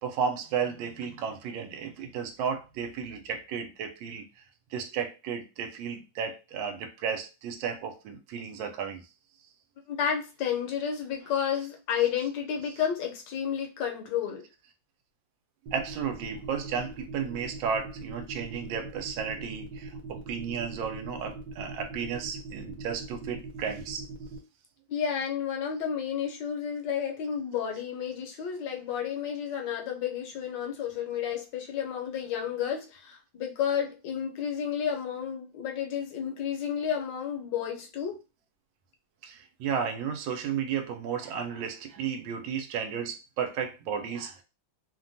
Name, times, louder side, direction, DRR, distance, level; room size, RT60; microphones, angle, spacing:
voice 1, 0.0-4.4 4.7-9.0 15.7-24.1 39.2-44.4, right 7 dB, 85° right, 1.3 m, -33 dB
voice 2, 9.9-14.4 24.9-38.2, left 8 dB, 75° left, 1.3 m, -31 dB
sound 1, 15.7-24.4, right 3 dB, 65° right, 1.2 m, -41 dB
3.3 x 2.2 x 2.6 m
omnidirectional pair, 2.0 m